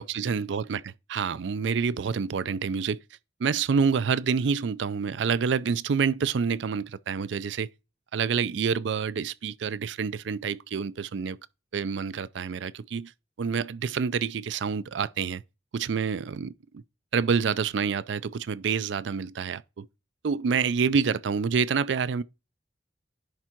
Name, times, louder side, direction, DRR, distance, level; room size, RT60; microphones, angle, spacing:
voice 1, 0.0-3.0 3.4-7.7 8.1-11.4 11.7-13.1 13.4-15.4 15.7-16.8 17.1-19.9 20.2-22.2, right 6 dB, 80° right, 0.4 m, -27 dB
10.5 x 3.6 x 4.4 m
head